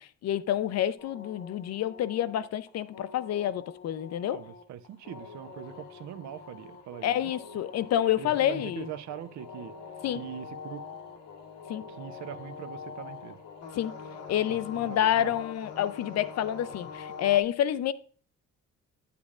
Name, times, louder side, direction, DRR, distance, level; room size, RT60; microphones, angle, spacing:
voice 1, 0.0-4.4 7.0-8.9 10.0-10.2 11.7-11.8 13.7-13.9 14.3-17.9, left 11 dB, 60° left, 0.5 m, -28 dB
sound 1, 1.0-17.4, left 5 dB, 85° left, 1.1 m, -44 dB
voice 2, 4.2-7.3 8.2-9.7 10.1-10.8 11.9-13.4 14.5-15.4, right 10 dB, 70° right, 0.6 m, -42 dB
8.5 x 8.2 x 2.4 m
cardioid pair, 90°, 30 cm